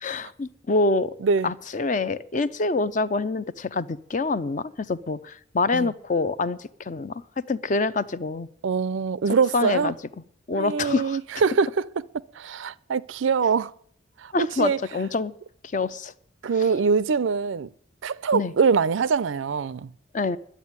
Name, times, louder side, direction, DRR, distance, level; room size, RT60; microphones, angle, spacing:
voice 1, 0.0-1.1 1.4-7.2 7.5-8.5 9.3-9.9 10.5-11.2 14.3-15.3 15.7-16.1 16.6-16.7 18.3-18.5 20.1-20.4, left 3 dB, 40° left, 0.5 m, -26 dB
voice 2, 8.6-9.9 10.5-12.0 12.4-13.7 14.2-14.8 16.4-17.7 18.0-19.9, right 5 dB, 80° right, 0.4 m, -23 dB
11.5 x 8.2 x 9.5 m
head